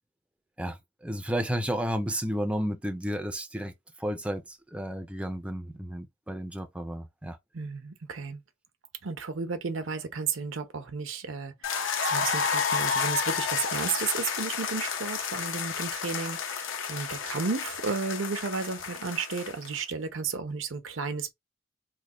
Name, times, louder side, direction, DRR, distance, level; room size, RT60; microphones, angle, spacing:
voice 1, 1.0-3.7 4.0-7.4, equal, 5° right, 0.4 m, -32 dB
voice 2, 7.5-8.4 9.0-21.3, right 5 dB, 75° right, 0.7 m, -33 dB
sound 1, 11.6-19.8, left 6 dB, 75° left, 0.7 m, -31 dB
3.2 x 2.1 x 3.7 m
head